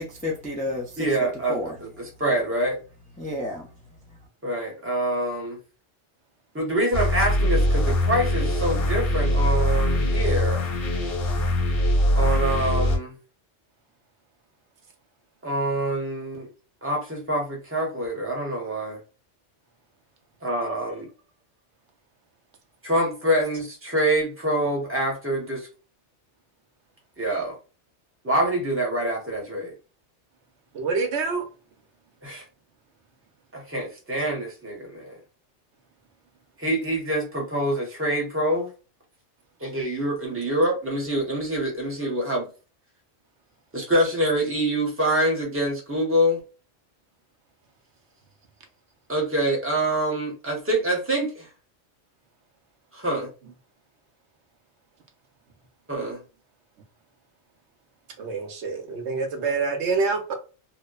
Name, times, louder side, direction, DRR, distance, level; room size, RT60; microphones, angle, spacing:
voice 1, 0.0-1.8 3.2-3.7, left 1 dB, 10° left, 0.4 m, -31 dB
voice 2, 1.0-2.8 4.4-5.6 6.5-10.6 12.1-13.1 15.4-16.5 16.8-19.0 20.4-21.1 22.8-25.7 27.2-27.6 28.2-29.7 32.2-32.4 33.5-35.2 36.6-38.7 39.6-42.5 43.7-46.4 49.1-51.5 52.9-53.3 55.9-56.2, right 1 dB, 15° right, 0.8 m, -25 dB
sound 1, 6.9-13.0, left 1 dB, 55° left, 1.1 m, -22 dB
voice 3, 30.7-31.4 58.2-60.3, right 4 dB, 75° right, 0.9 m, -26 dB
2.8 x 2.1 x 2.2 m
omnidirectional pair, 1.2 m